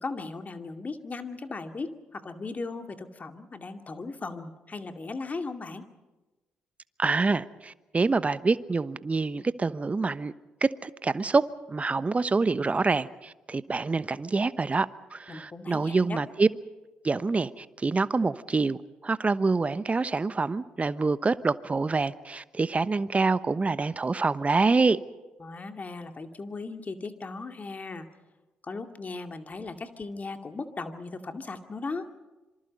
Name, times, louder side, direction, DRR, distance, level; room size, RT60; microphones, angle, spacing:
voice 1, 0.0-5.9 15.3-16.2 25.4-28.1 28.6-32.1, left 3 dB, 40° left, 6 dB, 2.3 m, -37 dB
voice 2, 7.0-10.3 10.6-16.5 17.0-25.0, right 3 dB, 30° right, 15 dB, 1.1 m, -26 dB
26.5 x 24.5 x 5.4 m, 1.1 s
hypercardioid pair, 45°, 4 cm